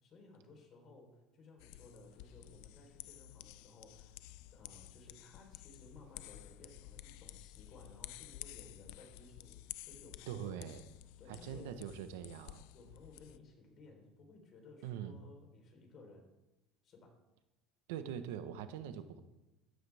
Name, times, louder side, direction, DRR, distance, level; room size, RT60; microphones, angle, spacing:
voice 1, 0.0-4.2 4.5-10.6 11.2-11.8 12.7-16.3 16.8-17.1, left 3 dB, 40° left, 2 dB, 4.1 m, -58 dB
sound 1, 1.6-13.4, left 16 dB, 70° left, 0.5 m, -52 dB
voice 2, 10.3-10.8 11.3-12.6 14.8-15.2 17.9-19.2, right 9 dB, 85° right, 9 dB, 1.2 m, -43 dB
14.0 x 13.5 x 3.6 m, 1.0 s
supercardioid pair, 130°, 0 cm